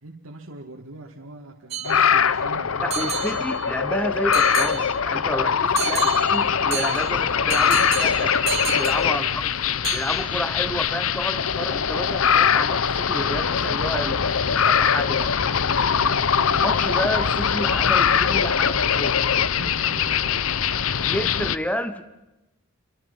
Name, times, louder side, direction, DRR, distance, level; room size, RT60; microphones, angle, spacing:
voice 1, 0.0-2.9 7.1-7.4 9.1-9.5 10.7-10.8 15.9-16.6 19.3-20.5, right 2 dB, 70° right, -1 dB, 2.1 m, -42 dB
sound 1, 1.7-2.4 2.9-3.9 4.3-5.2 5.8-9.6 9.8-10.5, right 10 dB, 30° right, 1.9 m, -32 dB
sound 2, 1.8-21.6, left 7 dB, 70° left, 0.8 m, -22 dB
voice 2, 2.8-8.4 8.7-9.2 9.9-15.3 16.5-19.2 21.0-22.1, equal, 5° left, 11 dB, 1.0 m, -30 dB
28.5 x 23.5 x 5.5 m, 0.97 s
head